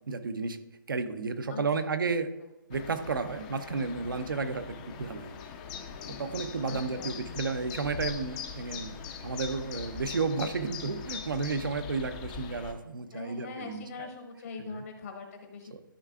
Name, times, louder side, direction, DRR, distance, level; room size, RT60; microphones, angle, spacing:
voice 1, 0.1-0.6 0.9-2.3 2.7-4.6 5.0-5.3 6.1-9.0 9.2-14.1 14.6-14.8 15.7-15.8, right 4 dB, 70° right, 10 dB, 0.8 m, -32 dB
voice 2, 1.5-1.9 6.7-7.4 13.1-15.8, left 4 dB, 45° left, 3 dB, 1.1 m, -43 dB
sound 1, 2.7-12.7, left 6 dB, 20° left, 0.6 m, -42 dB
13.0 x 5.5 x 2.4 m, 1.0 s
hypercardioid pair, 155°, 12 cm